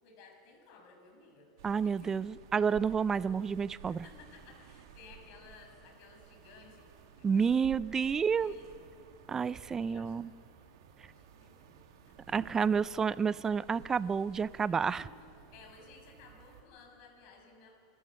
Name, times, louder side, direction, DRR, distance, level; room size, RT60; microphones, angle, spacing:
voice 1, 0.0-1.5 1.8-2.1 3.8-6.9 7.2-7.6 7.8-8.8 9.8-10.1 10.5-10.6 11.0-12.4 14.7-15.2 15.5-17.7, left 4 dB, 60° left, 2 dB, 6.0 m, -57 dB
voice 2, 1.6-4.0 7.2-8.5 9.3-10.3 12.3-15.0, right 6 dB, 20° right, 19 dB, 0.4 m, -30 dB
sound 1, 1.6-16.6, right 7 dB, 80° right, 2.2 m, -55 dB
27.5 x 13.5 x 7.6 m, 2.6 s
supercardioid pair, 125°, 2 cm